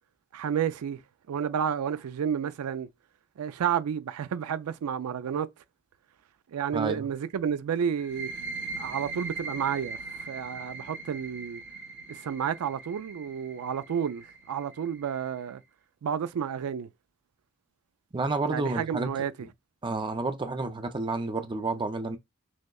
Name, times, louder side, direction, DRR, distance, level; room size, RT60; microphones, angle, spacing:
voice 1, 0.3-1.0 1.3-2.9 3.4-5.5 6.5-8.3 8.8-11.6 12.1-15.6 16.0-16.9 18.5-19.3, right 8 dB, 85° right, 0.4 m, -31 dB
voice 2, 6.7-7.1 18.1-19.3 19.8-22.2, right 3 dB, 20° right, 0.5 m, -30 dB
sound 1, 8.0-15.4, right 3 dB, 55° right, 1.0 m, -40 dB
6.2 x 2.1 x 2.3 m
head